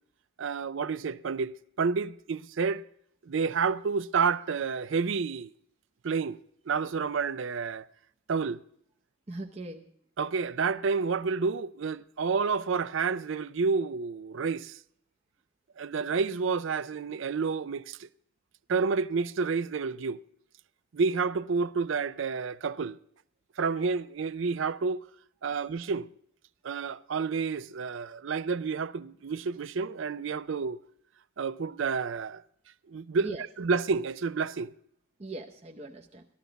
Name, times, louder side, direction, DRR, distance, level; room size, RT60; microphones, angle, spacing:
voice 1, 0.4-2.8 3.2-5.5 6.0-6.4 6.7-7.9 8.3-8.6 10.2-14.8 15.8-18.1 18.7-20.2 20.9-23.0 23.6-25.0 25.4-26.1 26.6-30.8 31.4-32.4 32.9-33.3 33.6-34.7, right 5 dB, 65° right, 0.5 m, -29 dB
voice 2, 9.3-9.9 25.5-25.6 33.2-33.4 35.2-36.3, right 2 dB, 30° right, 0.8 m, -40 dB
14.0 x 13.5 x 4.0 m
head